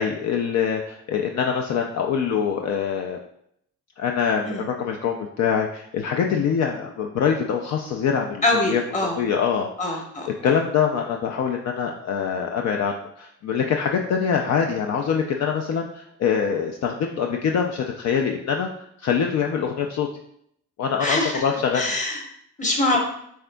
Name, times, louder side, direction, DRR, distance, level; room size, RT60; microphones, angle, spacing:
voice 1, 0.0-3.2 4.0-8.8 9.2-10.0 10.3-18.7 19.0-20.1 20.8-21.9, left 7 dB, 60° left, 2 dB, 0.5 m, -24 dB
voice 2, 8.4-9.2 9.8-10.3 21.0-21.4 21.7-22.2 22.6-23.0, left 2 dB, 25° left, 1 dB, 1.1 m, -23 dB
6.3 x 3.4 x 2.3 m, 0.71 s
cardioid pair, 90°, 30 cm